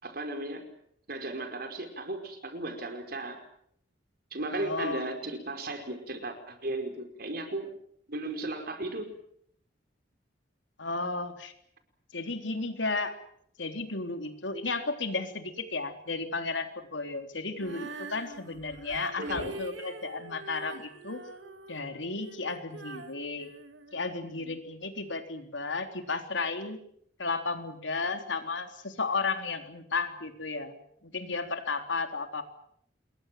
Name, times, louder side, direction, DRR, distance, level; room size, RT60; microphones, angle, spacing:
voice 1, 0.0-0.6 1.1-3.4 4.3-7.7 8.1-9.1 19.2-19.6, right 2 dB, 55° right, 6 dB, 5.0 m, -35 dB
voice 2, 4.5-5.2 10.8-11.5 12.1-13.2 13.6-21.2 21.7-23.5 23.9-26.8 27.2-32.4, left 3 dB, 85° left, 6 dB, 3.6 m, -33 dB
Female singing, 17.6-24.6, right 3 dB, 80° right, 2.7 m, -45 dB
27.5 x 22.0 x 7.7 m, 0.69 s
head